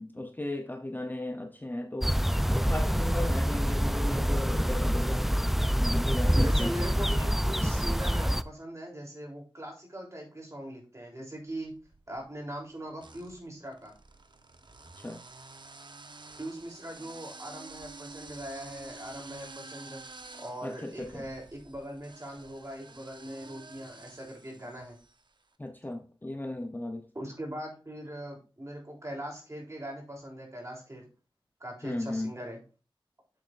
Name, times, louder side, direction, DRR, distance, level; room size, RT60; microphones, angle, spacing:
voice 1, 0.0-2.2 2.5-5.3 5.8-6.7 15.0-15.2 20.6-21.3 25.6-27.0 31.8-32.3, left 1 dB, 20° left, 0.7 m, -36 dB
sound 1, 2.0-8.4, equal, 5° right, 0.4 m, -26 dB
voice 2, 6.3-11.7 12.1-13.9 16.4-20.0 20.4-25.0 27.1-31.1 31.6-32.6, equal, 35° right, 3.3 m, -40 dB
sound 2, 11.6-12.3 13.0-25.3, right 3 dB, 60° right, 0.8 m, -49 dB
7.8 x 7.2 x 2.5 m
wide cardioid pair, 60°, 9 cm